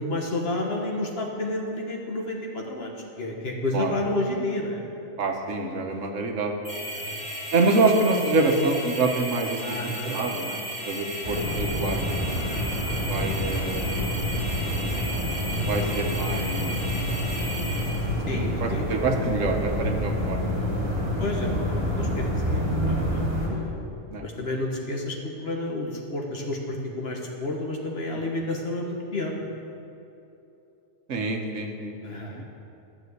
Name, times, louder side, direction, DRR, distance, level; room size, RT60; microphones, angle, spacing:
voice 1, 0.0-4.8 6.9-7.2 9.6-10.1 11.3-11.5 12.9-13.1 15.6-16.0 18.2-18.9 21.2-23.7 24.2-29.4 32.0-32.4, left 2 dB, 50° left, 0 dB, 1.6 m, -31 dB
voice 2, 5.2-6.5 7.5-12.2 13.1-13.8 15.7-16.7 18.6-20.6 20.9-21.0 24.1-24.3 31.1-32.4, right 3 dB, 80° right, 3 dB, 1.4 m, -26 dB
sound 1, 6.6-18.1, equal, 20° left, 3.4 m, -35 dB
sound 2, 11.2-23.5, equal, 50° right, 3.4 m, -27 dB
12.5 x 6.1 x 8.0 m, 2.8 s
omnidirectional pair, 1.3 m